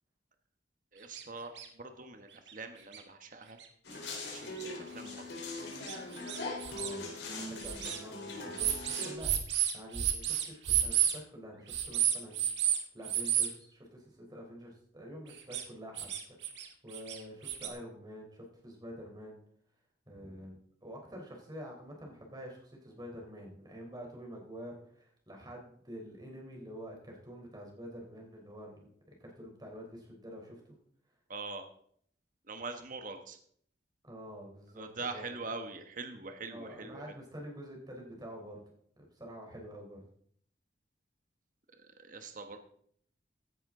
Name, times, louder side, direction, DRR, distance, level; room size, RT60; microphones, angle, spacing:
voice 1, 0.9-3.6 4.3-5.3 31.3-31.6 32.5-33.4 34.8-37.0 42.0-42.6, right 3 dB, 50° right, 6 dB, 1.3 m, -43 dB
sound 1, 1.1-1.2 1.6-1.7 2.5-2.6 2.9-3.0 3.6-3.7 4.6-4.7 5.1-5.2 5.9-6.9 7.6-8.0 8.6-11.2 11.7-12.8 13.0-13.5 15.3-15.6 16.0-16.7 16.9-17.7, right 10 dB, 85° right, 1.6 m, -31 dB
sound 2, 3.8-9.1, left 2 dB, 85° left, 3.8 m, -41 dB
voice 2, 6.7-7.1 7.4-9.4 9.7-16.1 16.8-19.4 20.1-20.6 20.8-28.9 29.2-30.6 34.0-35.4 36.5-38.6 39.0-40.0, equal, 25° right, 0 dB, 3.8 m, -47 dB
16.0 x 10.5 x 3.8 m, 0.63 s
head